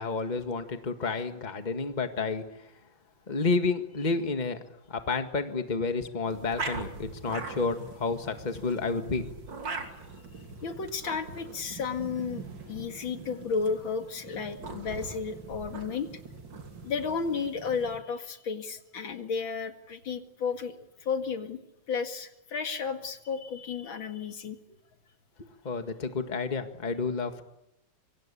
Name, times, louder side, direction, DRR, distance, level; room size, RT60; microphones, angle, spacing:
voice 1, 0.0-2.4 3.3-4.6 4.9-9.3 25.6-27.4, left 4 dB, 25° left, 8 dB, 1.8 m, -30 dB
sound 1, 6.2-18.0, right 4 dB, 65° right, 3.5 m, -42 dB
voice 2, 10.2-16.1 16.8-20.7 21.0-21.6 21.9-24.6, left 5 dB, 75° left, 7 dB, 2.8 m, -33 dB
26.5 x 25.5 x 8.4 m, 0.83 s
omnidirectional pair, 2.2 m